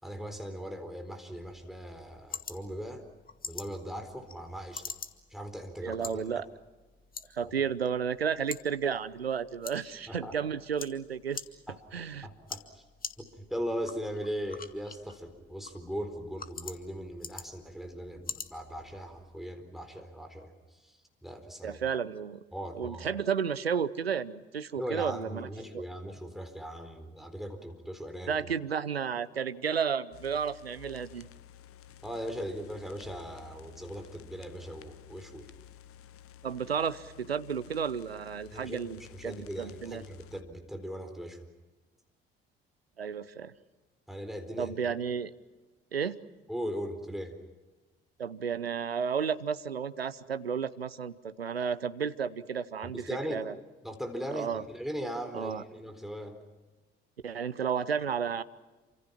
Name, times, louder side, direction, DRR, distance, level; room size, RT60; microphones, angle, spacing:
voice 1, 0.0-3.1 3.4-4.9 5.3-6.3 10.1-10.4 11.7-11.8 12.2-12.8 13.2-21.0 21.2-21.8 22.5-23.1 24.8-28.4 32.0-35.5 38.5-41.4 44.1-44.7 46.5-47.4 52.8-53.5 53.8-56.4, equal, ahead, 7 dB, 4.2 m, -39 dB
sound 1, 1.4-19.4, left 5 dB, 30° left, 2.0 m, -46 dB
voice 2, 5.8-6.5 7.3-11.4 11.9-12.3 21.6-22.4 22.7-25.5 25.7-25.8 28.3-31.3 36.4-40.0 43.0-43.5 44.6-45.3 45.9-46.2 48.2-53.5 54.3-54.6 55.3-55.6 57.2-58.4, right 7 dB, 85° right, 15 dB, 0.8 m, -32 dB
sound 2, 30.1-40.4, left 11 dB, 50° left, 1.1 m, -53 dB
28.5 x 26.5 x 5.9 m, 1.2 s
figure-of-eight pair, 50°, 30 cm